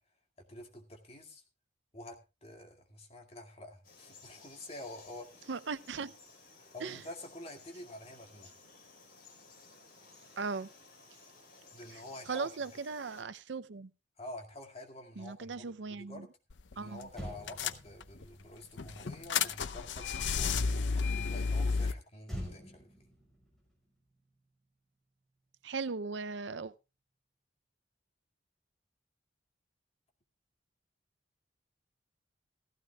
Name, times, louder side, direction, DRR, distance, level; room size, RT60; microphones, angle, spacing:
voice 1, 0.4-1.4 1.9-5.5 6.5-8.5 11.7-12.8 14.2-16.3 16.7-23.1, left 1 dB, 35° left, 2.2 m, -48 dB
Frog, 3.8-13.2, left 4 dB, 55° left, 4.4 m, -57 dB
voice 2, 5.5-6.1 6.8-7.0 10.4-10.7 12.3-13.9 15.2-16.3 16.8-17.1 25.6-26.7, right 4 dB, 80° right, 0.6 m, -38 dB
sound 1, 16.5-16.7 17.0-17.1 17.5-18.3 18.8-21.9, left 5 dB, 90° left, 0.7 m, -32 dB
Motor vehicle (road), 16.7-16.8 17.1-20.6 22.2-24.8 25.1-25.4, equal, ahead, 5.8 m, -48 dB
16.0 x 15.5 x 2.3 m
head